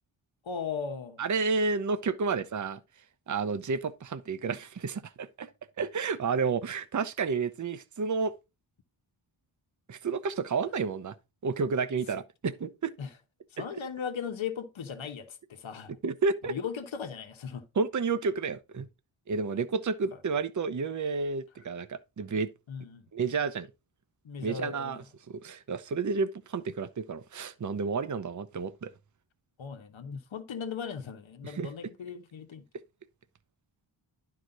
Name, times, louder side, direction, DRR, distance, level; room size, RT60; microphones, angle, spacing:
voice 1, 0.4-1.2 13.0-13.1 13.5-16.0 16.5-17.7 20.1-20.2 22.7-23.0 24.2-25.1 29.6-32.7, left 6 dB, 75° left, 1.1 m, -37 dB
voice 2, 1.2-2.8 3.3-5.5 5.8-8.3 9.9-11.1 11.4-12.9 16.0-16.5 17.8-18.9 19.3-22.5 23.1-23.7 24.4-25.0 25.4-28.9 31.4-31.7, right 4 dB, 40° right, 0.7 m, -31 dB
11.5 x 4.8 x 3.9 m
wide cardioid pair, 140°, 47 cm